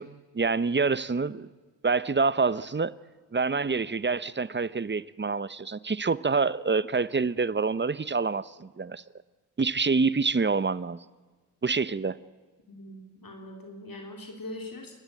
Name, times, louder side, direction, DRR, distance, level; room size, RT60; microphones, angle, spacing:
voice 1, 0.0-1.5 1.8-2.9 3.3-9.0 9.6-11.0 11.6-12.2, right 4 dB, 25° right, 0.8 m, -27 dB
voice 2, 12.7-14.9, left 1 dB, 55° left, 3.6 m, -42 dB
29.0 x 13.0 x 8.5 m
cardioid pair, 50°, 40 cm